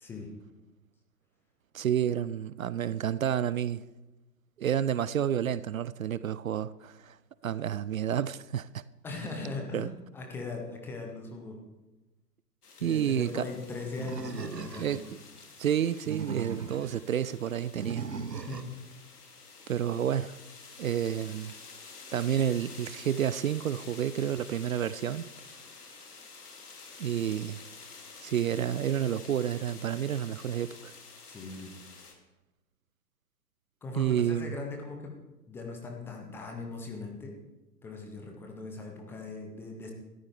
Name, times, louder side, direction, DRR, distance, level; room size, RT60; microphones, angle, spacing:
voice 1, 1.7-3.9 4.6-7.2 7.4-8.8 9.7-9.9 12.8-13.5 14.8-15.0 15.6-18.1 19.7-20.4 20.8-21.5 22.1-25.3 27.0-27.6 28.2-30.9 33.9-34.6, right 9 dB, 55° right, 0.5 m, -30 dB
voice 2, 9.0-11.6 12.8-15.1 18.5-18.7 31.3-31.8 33.8-35.1 35.5-37.4 37.8-39.9, left 3 dB, 5° left, 0.6 m, -39 dB
sound 1, 12.6-32.1, left 4 dB, 65° left, 2.8 m, -50 dB
Animal, 14.0-15.1 15.9-17.0 17.7-18.8, right 4 dB, 80° right, 1.2 m, -38 dB
19.5 x 13.5 x 3.4 m
figure-of-eight pair, 120°, 49 cm